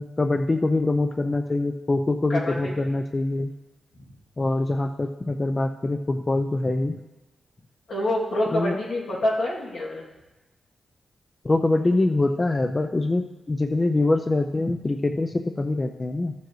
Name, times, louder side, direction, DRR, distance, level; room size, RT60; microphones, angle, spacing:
voice 1, 0.0-3.5 4.4-6.9 8.5-8.8 11.4-16.3, left 2 dB, 25° left, 6 dB, 0.4 m, -24 dB
voice 2, 2.3-2.9 7.9-10.0, left 1 dB, 80° left, -5 dB, 2.5 m, -26 dB
14.0 x 6.9 x 3.1 m, 1.1 s
wide cardioid pair, 130°, 0 cm